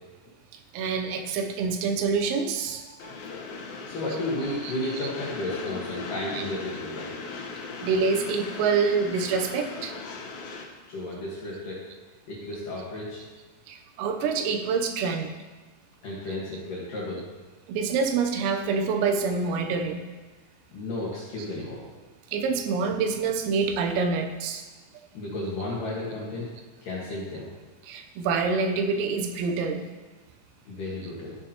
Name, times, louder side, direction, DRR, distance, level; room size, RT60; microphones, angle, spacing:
voice 1, 0.7-3.1 4.6-4.7 6.3-6.4 7.6-9.9 13.7-15.4 17.7-20.0 22.3-24.7 27.8-29.8, right 5 dB, 85° right, 4 dB, 3.6 m, -26 dB
Train, 3.0-10.6, left 4 dB, 85° left, 2.0 m, -38 dB
voice 2, 3.9-7.1 10.9-11.8 12.3-13.2 16.0-17.2 20.7-21.8 25.1-26.5 26.8-27.5 30.7-31.4, left 1 dB, 60° left, -6 dB, 2.4 m, -33 dB
13.0 x 9.4 x 2.9 m, 1.2 s
omnidirectional pair, 5.9 m